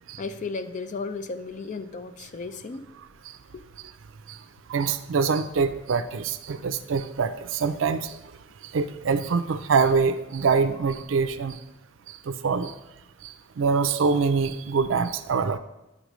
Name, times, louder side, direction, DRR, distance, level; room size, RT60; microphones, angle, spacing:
voice 1, 0.2-2.9 3.5-3.6, left 4 dB, 40° left, 10 dB, 0.4 m, -34 dB
voice 2, 4.7-8.2 8.7-11.6 12.3-12.7 13.2-15.6, right 5 dB, 75° right, 11 dB, 0.4 m, -24 dB
9.7 x 5.1 x 3.1 m, 0.94 s
head